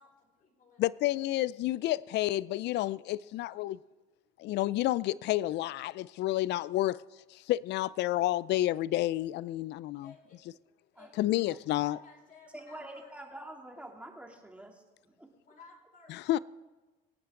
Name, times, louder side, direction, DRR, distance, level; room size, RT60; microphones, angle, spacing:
voice 1, 0.0-1.3 10.0-10.4 10.9-11.2 11.8-13.1 15.4-16.4, left 4 dB, 45° left, 5.1 m, -56 dB
voice 2, 0.8-3.8 4.4-7.0 7.3-10.1 11.2-12.0 16.1-16.4, left 15 dB, 60° left, 0.4 m, -30 dB
voice 3, 11.0-11.6 12.6-15.3, right 1 dB, 5° right, 2.8 m, -47 dB
24.5 x 8.8 x 3.7 m
supercardioid pair, 80°, 20 cm